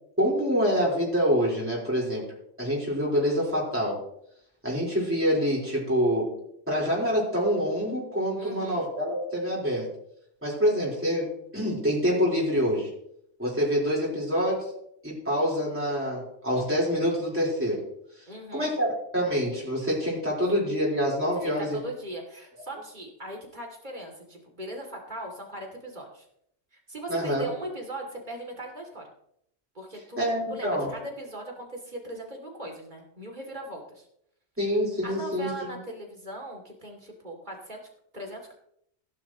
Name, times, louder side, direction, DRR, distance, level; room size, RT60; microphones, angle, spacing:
voice 1, 0.2-2.2 2.6-4.0 4.6-6.4 6.7-9.9 10.4-12.9 13.4-14.7 15.0-17.9 18.5-21.8 27.1-27.5 30.2-30.9 34.6-35.8, equal, 10° right, -6 dB, 4.3 m, -26 dB
voice 2, 8.4-8.8 18.3-18.7 21.4-26.3 26.7-29.1 29.7-34.1 35.0-37.8 38.1-38.5, right 1 dB, 40° right, 1 dB, 3.0 m, -39 dB
16.5 x 11.0 x 3.1 m, 0.72 s
omnidirectional pair, 1.2 m